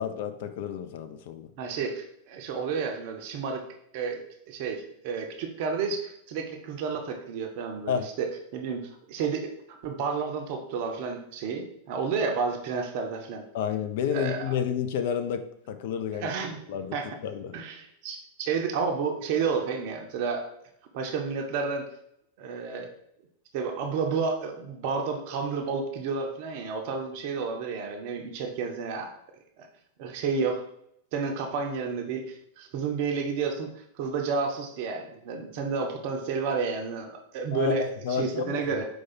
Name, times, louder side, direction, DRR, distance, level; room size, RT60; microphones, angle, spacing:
voice 1, 0.0-1.5 7.9-8.1 13.5-16.3 16.7-17.0 17.2-17.6 37.5-38.7, left 8 dB, 50° left, 9 dB, 0.4 m, -30 dB
voice 2, 1.6-3.6 3.9-13.4 14.1-14.5 16.1-16.6 16.9-17.1 17.5-20.4 20.9-21.8 22.4-22.9 23.5-29.1 29.6-29.7 30.0-30.6 31.1-38.9, right 5 dB, 45° right, 4 dB, 0.6 m, -31 dB
4.7 x 2.3 x 4.2 m, 0.73 s
figure-of-eight pair, 90°, 0 cm